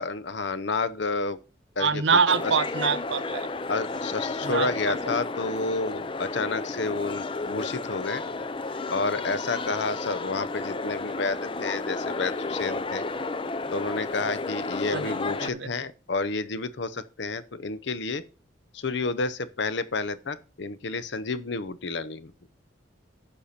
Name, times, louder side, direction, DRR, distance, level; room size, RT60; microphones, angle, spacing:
voice 1, 0.0-1.4 1.8-2.2 3.7-8.2 8.9-13.0 13.7-18.2 18.7-22.3, left 3 dB, 65° left, 0.7 m, -30 dB
voice 2, 1.8-3.5 4.4-5.0 14.9-15.7, right 5 dB, 70° right, 0.8 m, -25 dB
sound 1, 2.3-15.5, left 3 dB, 25° left, 0.5 m, -32 dB
11.0 x 6.7 x 4.3 m
head